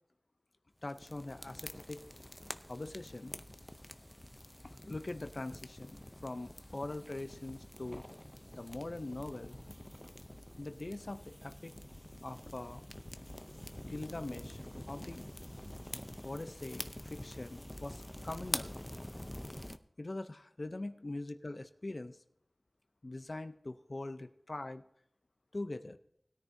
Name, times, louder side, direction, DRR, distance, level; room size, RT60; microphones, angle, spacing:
voice 1, 0.8-2.0 2.7-3.3 4.9-8.0 8.6-9.6 10.6-11.7 12.2-12.8 13.8-14.6 14.9-15.2 16.2-18.8 20.0-22.2 23.0-24.8 25.5-26.0, left 2 dB, 60° left, 10 dB, 0.6 m, -42 dB
sound 1, 0.8-19.8, left 1 dB, 20° left, 0.6 m, -46 dB
19.5 x 9.9 x 2.7 m, 0.70 s
wide cardioid pair, 50°, 0 cm